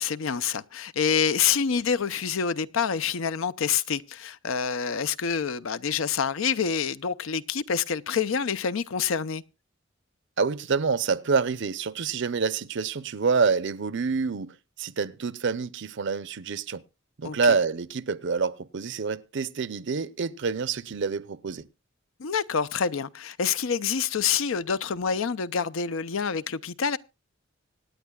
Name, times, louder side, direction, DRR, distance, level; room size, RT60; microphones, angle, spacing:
voice 1, 0.0-9.4 17.2-17.4 22.2-27.0, left 6 dB, 75° left, 0.6 m, -27 dB
voice 2, 10.4-16.8 17.2-21.7, right 5 dB, 60° right, 0.7 m, -27 dB
25.0 x 9.3 x 2.3 m
head